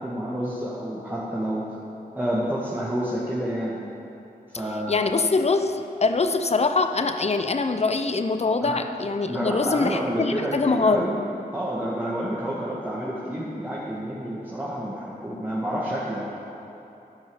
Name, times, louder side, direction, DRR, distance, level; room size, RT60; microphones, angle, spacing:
voice 1, 0.0-1.8 2.1-3.8 4.5-5.1 8.6-8.8 9.3-11.2 11.5-16.2, equal, 10° right, -7 dB, 1.9 m, -29 dB
voice 2, 4.9-11.1, left 3 dB, 40° left, 8 dB, 0.7 m, -23 dB
13.5 x 5.3 x 7.0 m, 3.0 s
cardioid pair, 40°, 17 cm